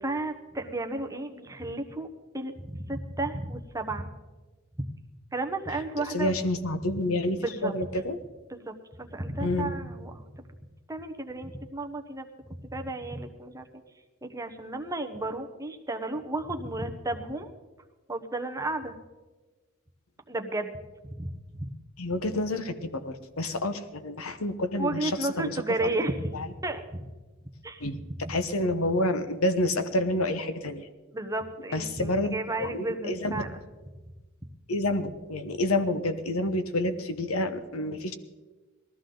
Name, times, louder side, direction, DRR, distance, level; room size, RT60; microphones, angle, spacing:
voice 1, 0.0-2.1 2.3-4.1 5.3-6.3 7.4-7.7 8.5-10.4 10.9-12.3 12.6-13.6 14.2-17.5 18.1-18.9 20.3-20.8 21.2-21.3 21.6-21.7 24.8-27.1 27.6-27.9 28.2-28.4 31.1-33.5, right 2 dB, 15° right, 6 dB, 0.9 m, -33 dB
voice 2, 6.1-8.2 9.4-9.7 22.0-25.1 25.4-25.9 26.3-26.5 27.8-28.0 28.3-30.9 31.7-32.3 32.6-33.4 34.7-38.1, left 1 dB, 85° left, 10 dB, 1.0 m, -28 dB
19.5 x 13.5 x 3.9 m, 1.2 s
head